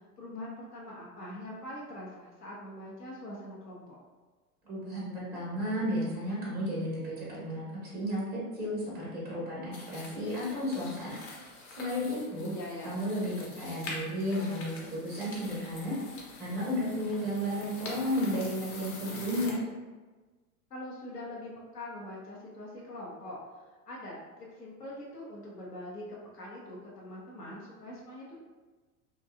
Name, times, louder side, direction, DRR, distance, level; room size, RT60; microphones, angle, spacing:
voice 1, 0.2-3.9 12.3-13.0 20.7-28.4, left 1 dB, 85° left, -5 dB, 0.6 m, -43 dB
voice 2, 4.7-11.2 11.8-12.5 12.8-14.7 15.0-16.0 16.4-19.6, equal, 5° right, -6 dB, 0.3 m, -33 dB
sound 1, 9.7-19.5, left 2 dB, 45° left, 0.8 m, -45 dB
2.7 x 2.2 x 2.3 m, 1.3 s
figure-of-eight pair, 85°, 46 cm